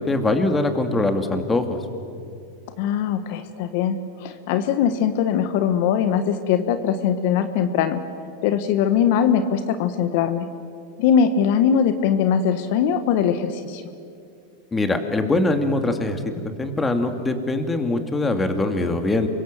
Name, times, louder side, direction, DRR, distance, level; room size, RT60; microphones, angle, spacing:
voice 1, 0.0-1.6 14.7-16.2 16.6-19.3, left 2 dB, 15° left, 6 dB, 2.7 m, -22 dB
voice 2, 2.8-8.0 8.4-10.5 11.0-13.8, left 8 dB, 65° left, 10 dB, 1.5 m, -21 dB
27.5 x 24.0 x 7.7 m, 2.5 s
hypercardioid pair, 110°, 0 cm